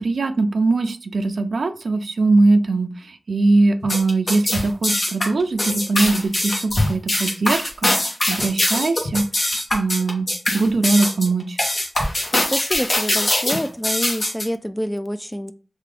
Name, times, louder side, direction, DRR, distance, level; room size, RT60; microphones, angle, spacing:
voice 1, 0.0-11.6, right 3 dB, 75° right, 0.4 m, -21 dB
sound 1, 3.8-14.5, left 1 dB, 50° left, 1.1 m, -22 dB
voice 2, 12.5-15.5, equal, 10° left, 0.3 m, -27 dB
3.4 x 2.5 x 3.4 m
wide cardioid pair, 65°, 0 cm